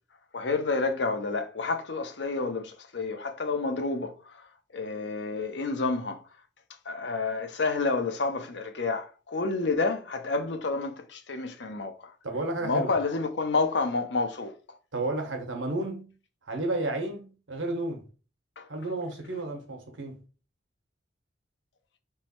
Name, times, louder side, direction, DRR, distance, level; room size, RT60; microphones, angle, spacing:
voice 1, 0.3-4.4 4.7-6.2 6.9-12.1 12.6-14.5 18.6-18.7, left 3 dB, 65° left, 0.7 m, -29 dB
voice 2, 12.2-12.9 14.9-16.1 16.5-18.0 18.7-20.2, right 2 dB, 85° right, 1.2 m, -32 dB
3.4 x 3.1 x 4.4 m
head